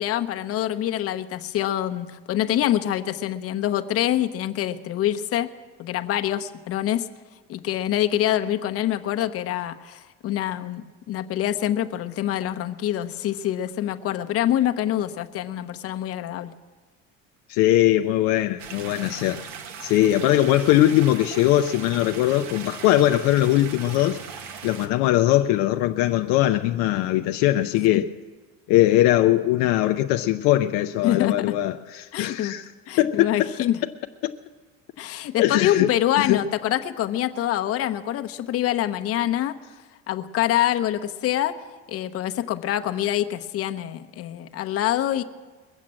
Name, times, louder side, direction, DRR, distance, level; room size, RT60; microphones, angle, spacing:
voice 1, 0.0-5.5 5.8-7.1 7.5-16.5 27.9-28.0 31.0-31.6 32.1-32.5 32.9-33.8 35.0-39.6 40.1-41.6 41.9-45.2, left 12 dB, 50° left, 0.9 m, -25 dB
voice 2, 17.5-19.4 19.8-24.2 24.6-28.1 28.7-32.6 33.0-33.5 34.2-34.3 35.4-35.9 36.2-36.4, left 14 dB, 75° left, 0.6 m, -20 dB
sound 1, 18.6-24.9, right 6 dB, 70° right, 1.7 m, -39 dB
22.0 x 7.4 x 7.5 m
cardioid pair, 115°, 30 cm